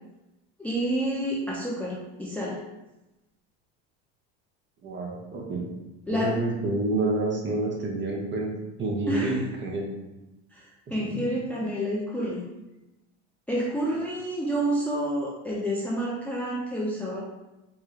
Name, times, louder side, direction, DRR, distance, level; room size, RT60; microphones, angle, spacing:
voice 1, 0.6-2.6 6.1-6.4 9.1-9.4 10.5-12.4 13.5-17.2, equal, 5° left, -5 dB, 0.5 m, -29 dB
voice 2, 4.8-5.7 6.1-8.5 8.8-9.9 11.1-11.2, right 2 dB, 30° right, 0 dB, 0.9 m, -28 dB
4.5 x 2.2 x 3.2 m, 0.98 s
supercardioid pair, 100°, 36 cm